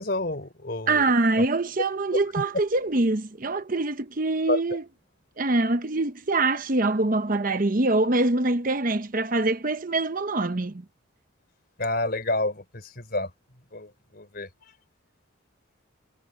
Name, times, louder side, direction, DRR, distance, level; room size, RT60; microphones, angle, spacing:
voice 1, 0.0-1.0 1.4-1.5 2.4-2.5 4.5-4.6 11.8-13.3 13.7-14.5, left 2 dB, 50° left, 4.1 m, -29 dB
voice 2, 0.9-4.8 5.4-10.8, right 2 dB, 45° right, 0.9 m, -24 dB
head